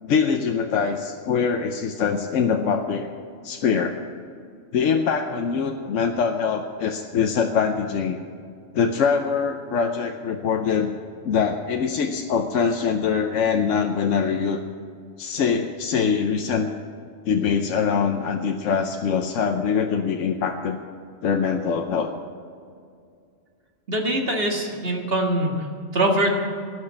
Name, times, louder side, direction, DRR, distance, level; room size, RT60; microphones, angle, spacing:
voice 1, 0.0-3.1 3.4-4.0 4.7-8.2 8.7-10.9 11.2-14.6 15.2-16.7 17.3-20.8 21.2-22.1, left 6 dB, 85° left, 4 dB, 1.1 m, -23 dB
voice 2, 23.9-25.7 25.9-26.3, right 1 dB, 50° right, 1 dB, 2.1 m, -23 dB
18.0 x 6.5 x 8.8 m, 2.3 s
omnidirectional pair, 1.3 m